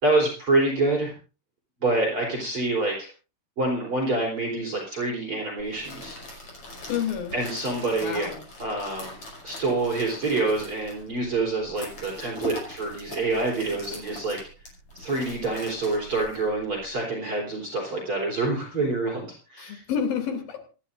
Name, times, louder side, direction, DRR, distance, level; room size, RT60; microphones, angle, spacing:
voice 1, 0.0-1.1 1.8-3.1 3.6-6.2 7.3-14.4 15.0-19.8, right 2 dB, 35° right, -1 dB, 4.6 m, -27 dB
sound 1, 5.6-16.9, left 1 dB, 35° left, 6.9 m, -42 dB
voice 2, 6.9-7.3 8.0-8.4 19.6-20.7, left 7 dB, 65° left, 5 dB, 4.7 m, -29 dB
27.0 x 11.5 x 2.6 m, 0.35 s
omnidirectional pair, 4.5 m